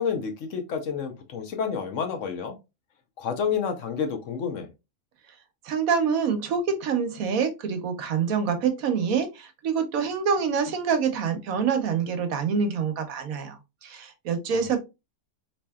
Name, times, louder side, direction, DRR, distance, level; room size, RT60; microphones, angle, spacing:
voice 1, 0.0-2.6 3.2-4.7, left 6 dB, 65° left, 1.0 m, -29 dB
voice 2, 5.6-14.8, right 6 dB, 70° right, 1.2 m, -26 dB
4.3 x 3.1 x 2.3 m
omnidirectional pair, 1.5 m